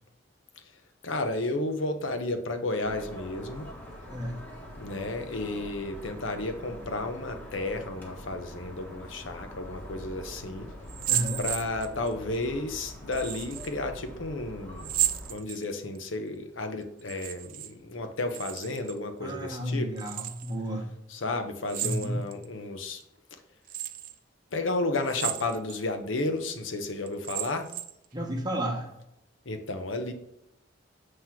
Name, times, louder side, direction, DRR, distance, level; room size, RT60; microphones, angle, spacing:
voice 1, 1.0-3.7 4.8-10.7 11.4-14.9 15.3-19.9 21.1-23.0 24.5-27.7 29.5-30.1, left 2 dB, 90° left, 7 dB, 0.9 m, -32 dB
sound 1, 2.8-15.3, left 1 dB, 10° left, 1.3 m, -44 dB
voice 2, 4.1-4.4 11.1-11.4 19.2-21.0 21.8-22.2 28.1-28.9, equal, 20° right, 1 dB, 1.2 m, -32 dB
sound 2, 10.9-12.1 13.1-13.7 14.8-16.0 17.0-17.7 18.0-19.0 20.0-20.5 21.7-22.4 23.0-23.1 23.7-24.1 25.0-25.8 26.3-26.4 27.1-28.0, right 12 dB, 45° right, 0.4 m, -33 dB
7.6 x 3.2 x 5.8 m, 0.82 s
head